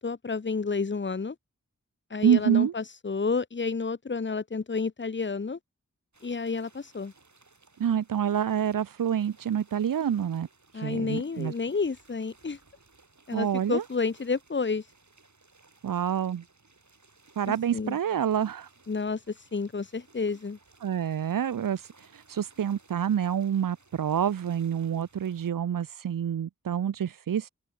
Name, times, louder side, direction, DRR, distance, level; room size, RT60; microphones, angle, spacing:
voice 1, 0.0-1.4 2.1-5.6 6.2-7.1 10.7-12.6 13.3-14.9 17.7-18.0 18.9-20.6, left 4 dB, 35° left, 0.8 m, -30 dB
voice 2, 2.2-2.7 7.8-10.5 10.8-11.5 13.3-13.8 15.8-16.4 17.4-18.7 20.8-27.5, right 9 dB, 85° right, 0.5 m, -27 dB
sound 1, 6.1-25.5, right 3 dB, 60° right, 5.5 m, -60 dB
open air
wide cardioid pair, 50°, 32 cm